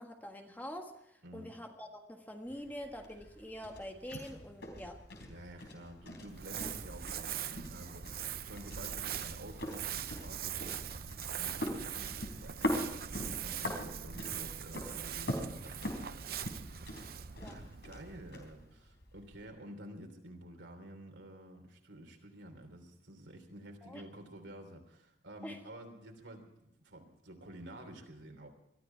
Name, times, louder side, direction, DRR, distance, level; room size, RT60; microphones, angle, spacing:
voice 1, 0.0-5.0 6.6-6.7 17.4-17.6 23.8-24.0 25.4-25.6, equal, 10° left, 3 dB, 1.5 m, -45 dB
voice 2, 1.2-1.5 5.3-16.5 17.4-28.5, right 1 dB, 85° right, 4 dB, 3.2 m, -51 dB
sound 1, 2.5-19.5, left 1 dB, 70° left, 3.7 m, -43 dB
Crumpling crinkling, 6.2-18.7, right 9 dB, 55° right, 0.6 m, -42 dB
21.5 x 13.0 x 4.5 m, 0.84 s
head